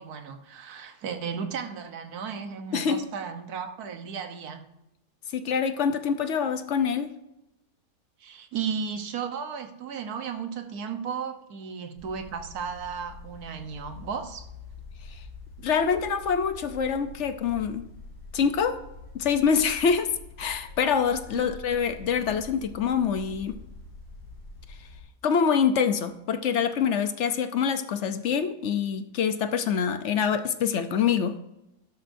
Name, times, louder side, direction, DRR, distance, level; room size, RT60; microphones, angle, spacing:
voice 1, 0.0-4.7 8.2-14.5 21.3-21.5, right 6 dB, 65° right, 7 dB, 1.5 m, -35 dB
voice 2, 5.3-7.1 15.6-17.8 18.3-18.8 19.1-23.6 25.2-31.4, left 6 dB, 55° left, 9 dB, 0.9 m, -25 dB
sound 1, 12.0-25.0, left 3 dB, 75° left, 5.5 m, -45 dB
12.5 x 12.0 x 2.7 m, 0.88 s
omnidirectional pair, 1.8 m